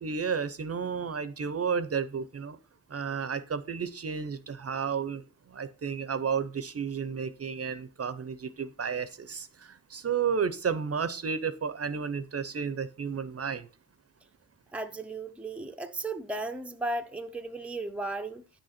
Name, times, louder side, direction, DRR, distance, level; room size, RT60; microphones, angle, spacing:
voice 1, 0.0-2.6 2.9-13.7, right 6 dB, 45° right, 0.6 m, -32 dB
voice 2, 14.7-18.4, right 2 dB, 5° right, 0.6 m, -35 dB
9.3 x 6.4 x 4.2 m
wide cardioid pair, 130°, 36 cm